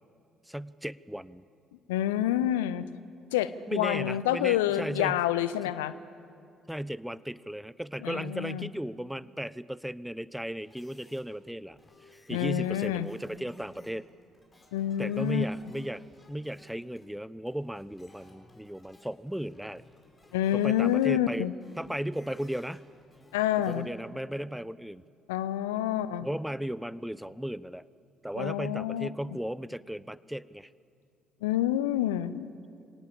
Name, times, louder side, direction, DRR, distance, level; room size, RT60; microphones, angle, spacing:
voice 1, 0.5-1.4 3.7-5.2 6.7-14.1 15.0-19.8 20.5-21.5 21.8-22.8 23.7-25.0 26.2-27.9 28.2-30.7, equal, 5° right, 20 dB, 0.5 m, -36 dB
voice 2, 1.9-2.9 3.3-5.9 8.0-8.7 12.3-13.1 14.7-15.4 20.3-21.5 23.3-23.9 25.3-26.3 28.4-29.1 31.4-32.5, left 12 dB, 75° left, 16 dB, 0.6 m, -28 dB
sound 1, 10.6-11.2 11.8-23.8, left 2 dB, 25° left, 5.4 m, -58 dB
24.0 x 18.0 x 7.5 m, 2.5 s
figure-of-eight pair, 45°, 0 cm